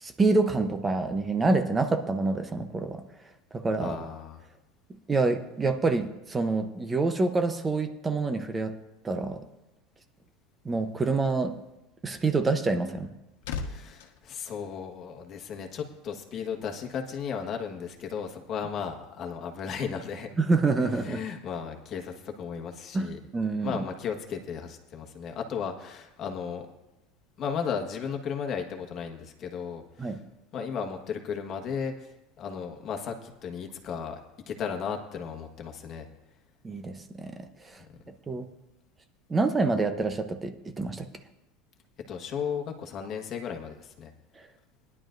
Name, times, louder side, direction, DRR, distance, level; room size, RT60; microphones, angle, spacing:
voice 1, 0.0-3.0 3.5-4.0 5.1-8.7 9.0-9.4 10.6-11.5 12.0-13.1 20.4-21.2 22.9-23.8 30.0-30.2 36.6-37.4 38.3-38.5 39.3-41.1, right 3 dB, 15° right, 7 dB, 0.8 m, -27 dB
voice 2, 3.8-4.4 13.5-20.3 21.0-23.2 23.6-26.7 27.4-30.2 30.5-34.2 34.5-36.1 37.8-37.9 42.1-44.1, left 6 dB, 30° left, 3 dB, 1.4 m, -35 dB
sound 1, 12.9-15.4 15.7-15.9, left 5 dB, 90° left, 1.2 m, -40 dB
20.0 x 11.0 x 2.6 m, 0.95 s
supercardioid pair, 160°, 0 cm